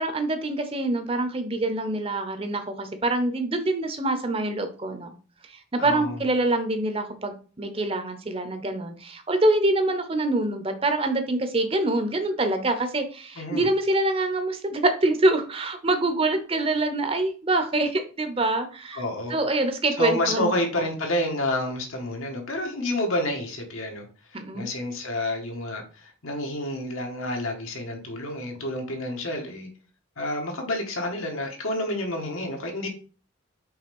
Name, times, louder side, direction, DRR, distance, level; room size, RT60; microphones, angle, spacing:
voice 1, 0.0-5.1 5.7-19.0 19.3-20.5 20.8-20.9 24.3-24.7, right 2 dB, 25° right, 8 dB, 0.7 m, -25 dB
voice 2, 5.8-6.2 13.3-13.6 18.9-19.4 20.0-24.1 24.5-29.7 30.2-32.9, left 1 dB, 85° left, 2 dB, 1.7 m, -29 dB
5.6 x 3.3 x 5.3 m, 0.37 s
head